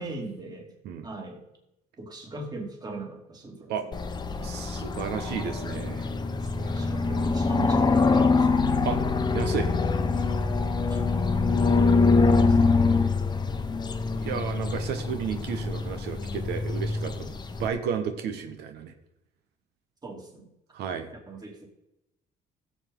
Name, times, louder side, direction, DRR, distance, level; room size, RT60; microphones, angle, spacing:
voice 1, 0.0-0.7 1.0-1.4 2.0-3.9 6.5-8.8 10.9-11.0 11.6-13.0 20.0-20.5 21.3-21.7, right 3 dB, 25° right, 1 dB, 2.6 m, -39 dB
sound 1, 3.9-17.7, left 4 dB, 25° left, 0.9 m, -24 dB
voice 2, 4.4-6.1 6.6-6.7 8.8-9.0 9.3-9.7 14.2-17.3 17.6-18.9 20.7-21.1, right 7 dB, 75° right, 6 dB, 1.3 m, -32 dB
16.0 x 7.4 x 3.9 m, 0.88 s
cardioid pair, 110°, 17 cm